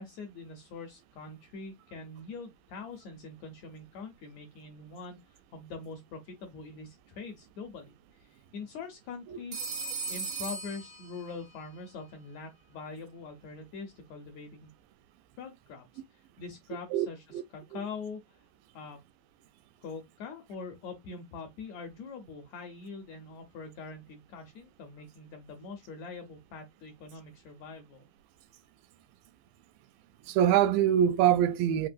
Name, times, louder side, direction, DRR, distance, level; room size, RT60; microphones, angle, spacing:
voice 1, 0.0-9.7 10.1-14.7 15.4-18.4 18.7-19.0 19.8-28.1, left 4 dB, 80° left, 1.6 m, -44 dB
Telephone, 9.5-11.6, right 4 dB, 70° right, 1.3 m, -37 dB
voice 2, 30.3-31.9, right 10 dB, 90° right, 2.3 m, -24 dB
5.2 x 2.8 x 2.5 m
omnidirectional pair, 3.9 m